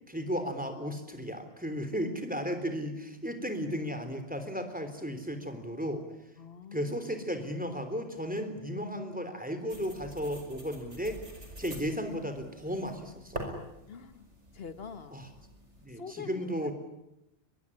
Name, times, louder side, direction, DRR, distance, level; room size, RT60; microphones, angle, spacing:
voice 1, 0.1-6.0 6.7-11.2 11.6-13.4 15.1-15.3 15.8-16.7, equal, 5° right, 7 dB, 3.5 m, -34 dB
voice 2, 6.4-6.9 13.9-14.3 14.5-15.2 16.0-16.7, left 5 dB, 60° left, 11 dB, 1.7 m, -45 dB
sound 1, 9.7-15.9, right 1 dB, 90° right, 5.7 m, -45 dB
22.5 x 22.0 x 10.0 m, 0.89 s
omnidirectional pair, 1.2 m